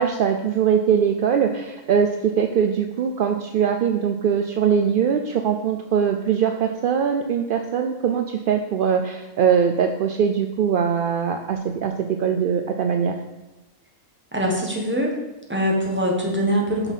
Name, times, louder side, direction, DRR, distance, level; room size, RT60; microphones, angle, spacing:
voice 1, 0.0-11.9 12.2-13.1, right 7 dB, 65° right, 5 dB, 0.5 m, -21 dB
voice 2, 14.3-15.1 15.5-16.9, equal, 10° right, -1 dB, 1.3 m, -23 dB
6.0 x 5.7 x 5.6 m, 1.1 s
omnidirectional pair, 1.4 m